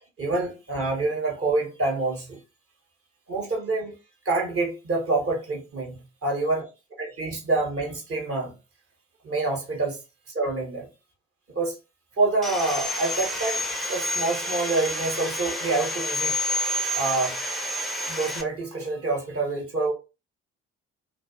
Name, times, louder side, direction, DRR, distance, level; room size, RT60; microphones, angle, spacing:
voice 1, 0.2-2.4 3.3-4.0 4.2-6.7 7.0-8.5 9.2-10.0 10.3-10.9 11.5-11.8 12.2-16.3 16.9-17.4 18.1-19.9, right 3 dB, 35° right, 0.9 m, -27 dB
Sawing, 12.4-18.4, equal, ahead, 0.4 m, -29 dB
2.4 x 2.3 x 2.3 m
figure-of-eight pair, 45°, 38 cm